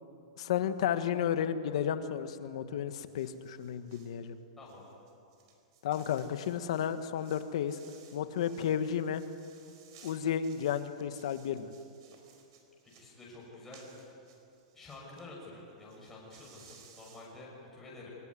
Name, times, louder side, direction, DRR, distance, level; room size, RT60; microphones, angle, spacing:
voice 1, 0.4-4.4 5.8-7.8 8.1-9.2 10.0-11.7, left 9 dB, 60° left, 10 dB, 1.5 m, -32 dB
sound 1, 3.1-4.2 4.6-15.2 15.5-15.6 15.8-17.3, right 7 dB, 45° right, 4.5 m, -60 dB
voice 2, 4.6-4.9 12.8-13.9 14.7-18.1, left 2 dB, 5° left, -5 dB, 6.2 m, -49 dB
24.5 x 21.0 x 9.8 m, 2.6 s
supercardioid pair, 170°, 4 cm